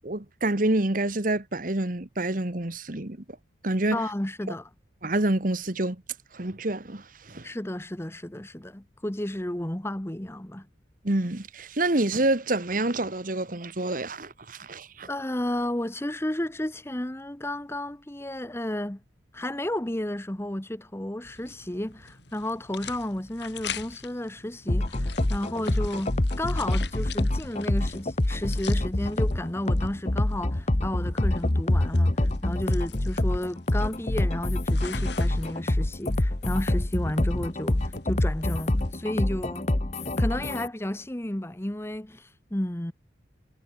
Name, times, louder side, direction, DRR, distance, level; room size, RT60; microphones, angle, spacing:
voice 1, 0.0-3.2 3.6-4.0 5.0-6.0 6.3-7.5 11.0-15.1, right 2 dB, 45° right, 1.5 m, -27 dB
voice 2, 3.9-4.7 7.4-10.7 15.1-19.0 19.3-39.7 40.2-42.9, left 1 dB, 15° left, 1.0 m, -32 dB
sound 1, 21.2-39.0, left 7 dB, 65° left, 7.4 m, -45 dB
sound 2, 24.7-40.7, left 1 dB, 35° left, 1.1 m, -26 dB
head